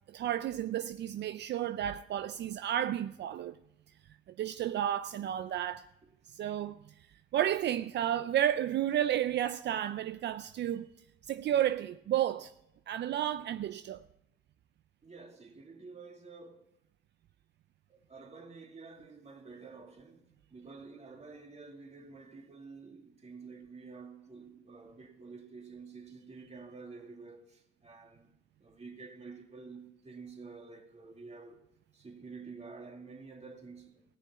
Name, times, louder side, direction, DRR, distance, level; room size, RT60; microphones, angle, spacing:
voice 1, 0.1-3.6 4.4-5.9 6.3-6.8 7.3-10.9 11.2-12.5 12.9-14.0, right 11 dB, 60° right, 0.5 m, -32 dB
voice 2, 15.0-16.6 17.9-28.3 28.6-31.6 31.9-34.0, right 4 dB, 35° right, 2.4 m, -49 dB
16.0 x 6.8 x 8.4 m
cardioid pair, 90°, 20 cm